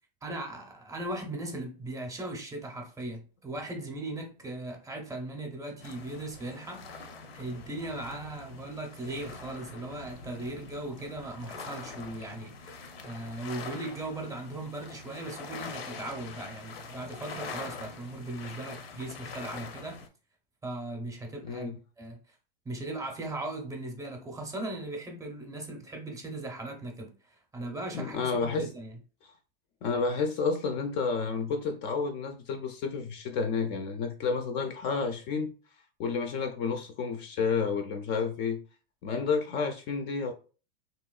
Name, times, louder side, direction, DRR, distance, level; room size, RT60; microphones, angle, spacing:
voice 1, 0.2-20.0 20.6-21.7 22.0-22.2 22.7-27.1 27.5-29.0, right 2 dB, 10° right, 0.6 m, -38 dB
sound 1, 5.8-20.1, left 4 dB, 90° left, 0.7 m, -44 dB
voice 2, 21.4-21.8 27.9-28.7 29.2-29.3 29.8-35.5 36.0-38.6 39.0-40.3, left 5 dB, 35° left, 0.4 m, -30 dB
3.0 x 2.8 x 2.3 m
hypercardioid pair, 120°, 29 cm